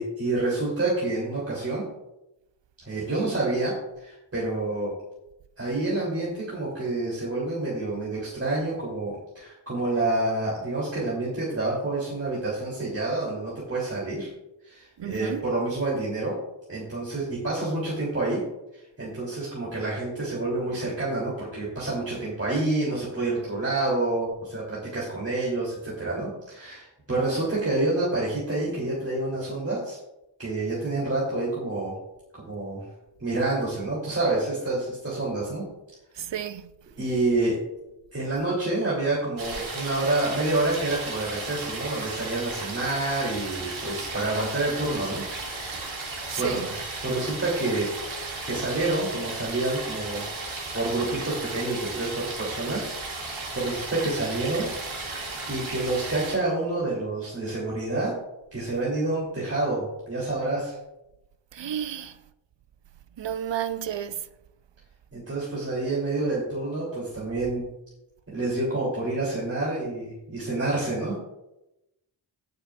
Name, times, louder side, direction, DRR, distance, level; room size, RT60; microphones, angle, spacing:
voice 1, 0.0-1.8 2.8-4.9 5.6-14.3 14.6-16.4 16.7-18.4 18.7-30.0 30.4-31.9 32.3-32.8 33.2-35.6 37.0-37.6 38.1-45.2 46.4-50.3 50.7-54.7 55.0-55.2 55.5-58.1 58.5-60.8 62.0-62.1 65.1-67.7 68.3-71.2, right 2 dB, 30° right, 3.3 m, -28 dB
voice 2, 15.0-15.4 36.2-36.7 46.3-46.7 61.5-62.1 63.2-64.2, right 10 dB, 65° right, 0.7 m, -31 dB
sound 1, 39.4-56.4, right 3 dB, 90° right, 2.6 m, -35 dB
19.0 x 6.9 x 2.5 m
wide cardioid pair, 70°, 46 cm